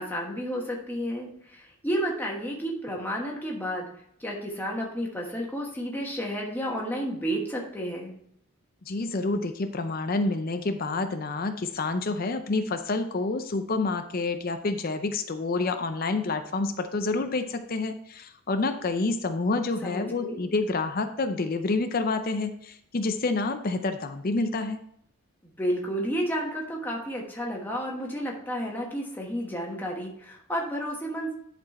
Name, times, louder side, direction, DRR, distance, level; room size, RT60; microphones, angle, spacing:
voice 1, 0.0-3.9 4.2-8.1 19.8-20.4 25.4-31.3, equal, 10° left, -2 dB, 1.3 m, -31 dB
voice 2, 8.9-24.8, left 3 dB, 40° left, 8 dB, 0.5 m, -28 dB
10.5 x 4.3 x 4.2 m, 0.70 s
head